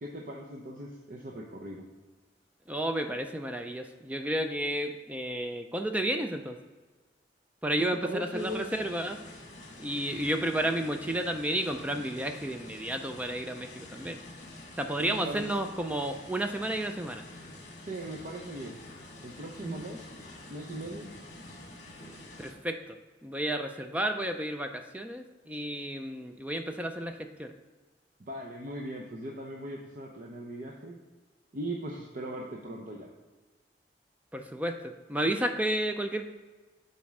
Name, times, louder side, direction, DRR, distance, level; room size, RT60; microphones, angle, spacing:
voice 1, 0.0-1.9 7.8-8.7 15.0-15.5 17.8-18.8 19.2-20.1 20.5-21.1 28.3-31.0 31.5-33.1, right 1 dB, 50° right, -1 dB, 0.7 m, -39 dB
voice 2, 2.7-6.6 7.6-9.2 9.8-14.2 14.8-17.3 19.6-19.8 22.4-23.0 23.2-27.5 34.3-36.3, right 1 dB, 10° right, 6 dB, 0.4 m, -32 dB
sound 1, 8.4-22.5, left 1 dB, 45° left, 1.3 m, -47 dB
7.2 x 4.3 x 4.8 m, 1.3 s
head